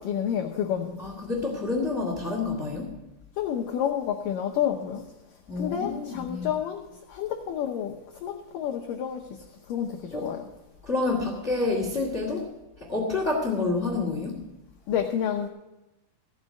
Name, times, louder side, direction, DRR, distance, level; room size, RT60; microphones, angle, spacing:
voice 1, 0.0-1.0 3.4-5.0 5.6-6.8 7.1-8.0 8.2-9.3 9.7-10.4 14.9-15.5, left 9 dB, 80° left, 3 dB, 1.9 m, -29 dB
voice 2, 1.0-2.9 5.5-6.5 10.1-10.3 10.8-12.5 12.8-14.4, left 3 dB, 30° left, 0 dB, 1.3 m, -28 dB
16.0 x 6.4 x 8.3 m, 0.98 s
omnidirectional pair, 4.9 m